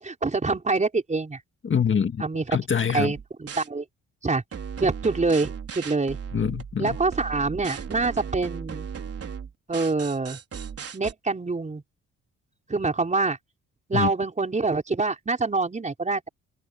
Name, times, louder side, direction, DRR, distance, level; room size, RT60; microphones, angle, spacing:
voice 1, 0.0-1.4 2.2-2.5 2.9-3.8 4.2-4.4 4.8-6.2 6.8-8.9 9.7-10.4 10.9-11.8 12.7-13.4 13.9-16.3, right 3 dB, 25° right, 4.9 m, -25 dB
voice 2, 1.6-2.2 2.5-3.1 6.3-7.0 13.9-14.1, left 7 dB, 40° left, 2.1 m, -24 dB
sound 1, 3.1-3.7 4.5-11.1, right 7 dB, 50° right, 4.4 m, -36 dB
cardioid pair, 90°, 30 cm